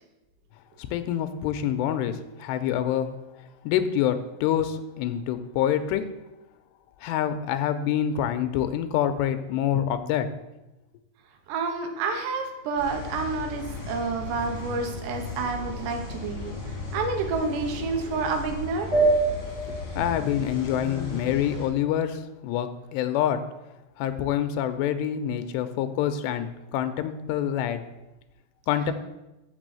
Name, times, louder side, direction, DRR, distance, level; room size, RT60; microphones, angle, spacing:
voice 1, 0.8-3.1 3.6-6.1 7.0-10.3 20.0-23.4 24.0-27.8 28.7-28.9, left 10 dB, 90° left, 9 dB, 2.8 m, -26 dB
voice 2, 11.5-16.6 16.9-18.9, right 4 dB, 85° right, 5 dB, 3.3 m, -29 dB
sound 1, 12.7-21.7, left 3 dB, 25° left, 1.8 m, -36 dB
sound 2, 18.9-21.9, right 3 dB, 30° right, 2.1 m, -27 dB
6.7 x 6.2 x 7.6 m, 0.98 s
omnidirectional pair, 4.9 m